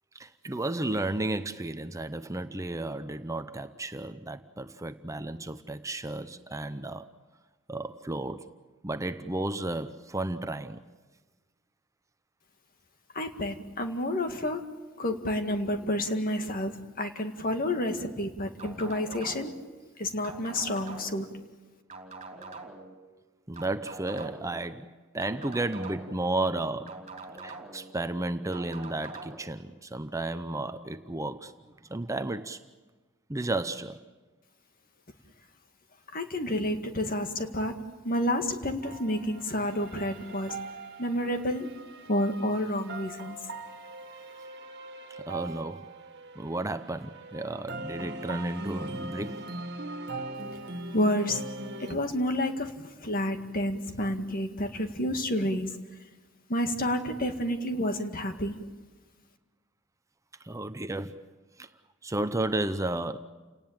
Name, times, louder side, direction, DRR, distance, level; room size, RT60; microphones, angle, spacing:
voice 1, 0.1-7.1 7.7-8.5 8.8-10.8 23.5-27.1 27.4-31.5 31.9-32.6 33.3-34.0 45.1-45.9 46.4-49.5 60.4-61.2 61.6-61.7 62.0-63.2, right 2 dB, 15° right, 0.8 m, -33 dB
voice 2, 13.1-14.6 15.0-19.5 20.0-21.3 36.1-37.7 38.0-40.6 41.0-41.7 42.1-43.4 50.9-51.4 51.8-52.7 53.0-55.7 56.5-58.6, left 1 dB, 45° left, 2.0 m, -29 dB
sound 1, 18.6-19.6 20.2-21.3 21.9-22.9 23.5-24.6 25.2-26.3 26.9-27.9 28.5-29.4, right 3 dB, 35° right, 3.2 m, -44 dB
sound 2, 38.8-51.9, right 2 dB, 55° right, 2.0 m, -40 dB
29.5 x 18.5 x 8.8 m
head